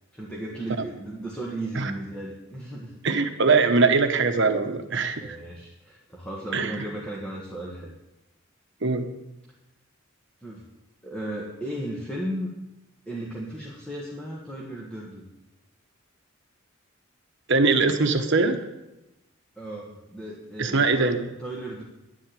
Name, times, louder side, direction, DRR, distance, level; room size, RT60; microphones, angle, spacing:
voice 1, 0.1-3.0 5.2-7.9 10.4-10.7 11.0-12.5 13.0-15.3 19.6-21.1 21.4-21.8, right 1 dB, 5° left, -4 dB, 1.6 m, -35 dB
voice 2, 3.0-5.4 6.5-6.8 8.8-9.1 17.5-18.6 20.6-21.2, right 4 dB, 60° right, 6 dB, 1.1 m, -22 dB
10.5 x 7.8 x 9.2 m, 0.96 s
head